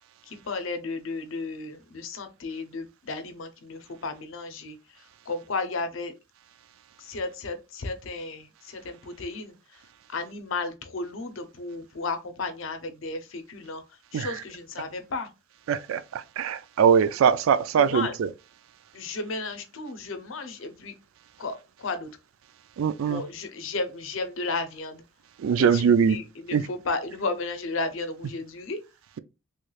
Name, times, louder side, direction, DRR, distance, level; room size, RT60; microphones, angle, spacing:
voice 1, 0.2-6.1 7.0-9.8 10.1-15.3 17.8-18.2 18.9-20.9 21.4-22.1 23.1-25.0 25.6-28.8, left 3 dB, 75° left, 0.6 m, -34 dB
voice 2, 15.7-18.3 22.8-23.2 25.4-26.2 26.5-26.6, right 7 dB, 85° right, 0.3 m, -22 dB
3.1 x 3.1 x 2.3 m
head